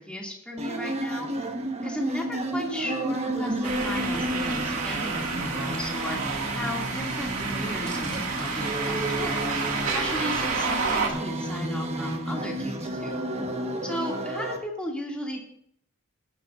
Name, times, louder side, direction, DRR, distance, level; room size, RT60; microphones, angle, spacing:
voice 1, 0.0-1.5 1.8-9.4 9.9-13.3 13.8-15.4, equal, 5° left, -2 dB, 2.3 m, -35 dB
sound 1, 0.6-14.6, right 1 dB, 30° right, 1.3 m, -31 dB
sound 2, 3.6-11.1, right 4 dB, 75° right, 2.1 m, -30 dB
17.5 x 11.0 x 2.5 m, 0.68 s
head